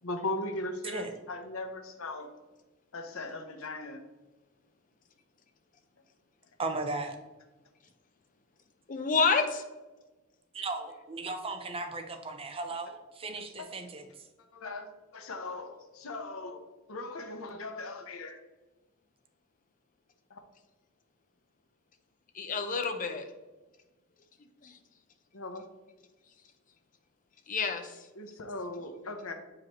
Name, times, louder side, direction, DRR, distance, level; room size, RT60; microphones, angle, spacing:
voice 1, 0.0-2.3 2.9-4.0 13.6-13.9 14.5-16.6 16.9-18.4 20.3-20.4 25.3-25.7 28.2-29.3, left 2 dB, 85° left, 6 dB, 0.8 m, -38 dB
voice 2, 0.8-1.1 6.6-7.2 10.5-14.3, right 3 dB, 25° right, 5 dB, 0.6 m, -36 dB
voice 3, 8.9-9.6 22.3-23.3 24.6-24.8 27.5-28.1, left 4 dB, 40° left, 7 dB, 0.6 m, -29 dB
7.4 x 4.9 x 3.0 m, 1.1 s
head